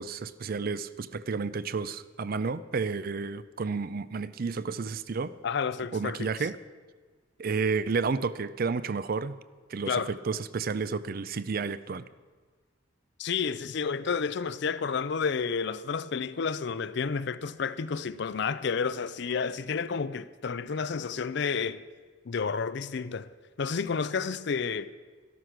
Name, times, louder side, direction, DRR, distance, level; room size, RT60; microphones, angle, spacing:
voice 1, 0.0-5.3 5.9-6.6 7.4-9.4 9.7-12.1, right 4 dB, 50° right, 0.5 m, -31 dB
voice 2, 5.4-6.3 9.9-10.1 13.2-21.8 22.3-23.3 23.6-24.9, left 5 dB, 60° left, 0.5 m, -30 dB
13.0 x 12.5 x 5.9 m
head